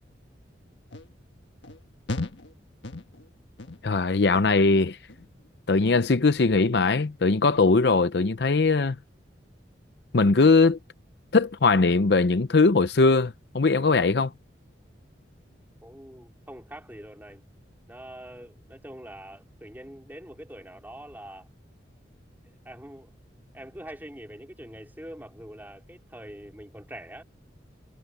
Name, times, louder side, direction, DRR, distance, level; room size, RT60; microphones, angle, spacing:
sound 1, 0.9-1.1 1.6-1.8 2.1-2.5 2.8-3.3 3.6-4.0 4.3-4.7 5.1-5.5 5.8-6.0, left 2 dB, 80° left, 1.4 m, -36 dB
voice 1, 3.8-5.0 5.7-9.0 10.1-10.8 11.3-14.3, left 3 dB, 60° left, 0.6 m, -20 dB
voice 2, 15.8-17.4 17.9-21.5 22.6-23.1 23.5-27.2, right 1 dB, 10° right, 4.2 m, -44 dB
head